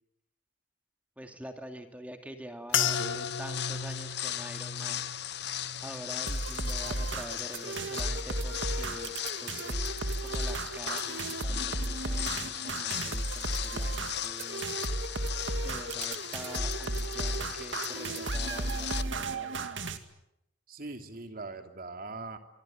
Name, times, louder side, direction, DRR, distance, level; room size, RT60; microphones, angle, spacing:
voice 1, 1.2-5.1 5.8-14.7 15.5-19.7, equal, 10° right, 5 dB, 2.4 m, -46 dB
sound 1, 2.7-7.3 7.6-8.2 8.8-9.1, left 8 dB, 80° left, 1.8 m, -36 dB
sound 2, 2.7-19.0, left 11 dB, 60° left, 1.0 m, -37 dB
voice 2, 2.8-3.2 20.7-22.4, right 3 dB, 50° right, 6 dB, 2.9 m, -41 dB
sound 3, 6.3-20.0, right 2 dB, 70° right, 2.3 m, -34 dB
26.5 x 24.0 x 9.0 m, 0.83 s
head